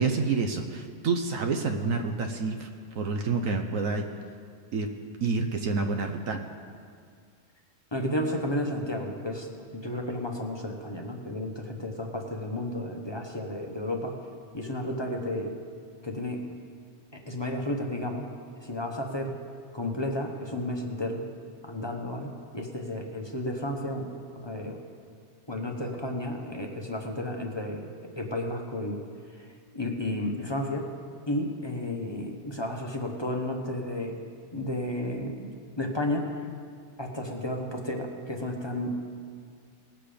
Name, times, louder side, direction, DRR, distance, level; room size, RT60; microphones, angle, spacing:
voice 1, 0.0-2.7 2.9-4.1 4.7-4.9 5.2-6.4, right 4 dB, 65° right, 5 dB, 1.1 m, -28 dB
voice 2, 7.9-14.2 14.5-15.6 16.0-16.4 17.1-18.3 18.6-19.3 19.7-21.2 21.6-24.8 25.5-27.9 28.2-29.0 29.4-29.5 29.7-30.9 31.3-34.2 34.5-36.3 37.0-39.0, left 1 dB, 20° left, 2 dB, 0.9 m, -32 dB
19.0 x 7.6 x 5.1 m, 2.1 s
omnidirectional pair, 1.6 m